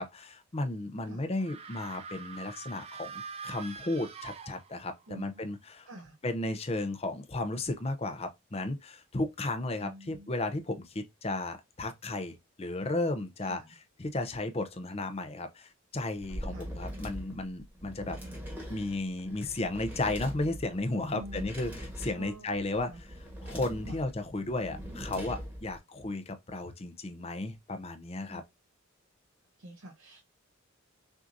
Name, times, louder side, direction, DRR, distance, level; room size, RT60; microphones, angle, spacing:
voice 1, 0.0-5.9 6.2-13.6 14.0-18.2 18.7-22.9 23.4-28.4, left 2 dB, 25° left, 0.6 m, -34 dB
sound 1, 1.4-5.1, right 5 dB, 25° right, 0.3 m, -44 dB
voice 2, 5.1-5.6 5.9-6.2 9.8-10.3 13.4-13.7 16.5-16.7 21.1-21.8 22.1-23.0 23.8-24.0 28.3-28.4 29.6-30.2, equal, 65° right, 0.7 m, -47 dB
sound 2, 16.2-25.8, equal, 10° right, 1.2 m, -42 dB
6.0 x 2.6 x 2.6 m
head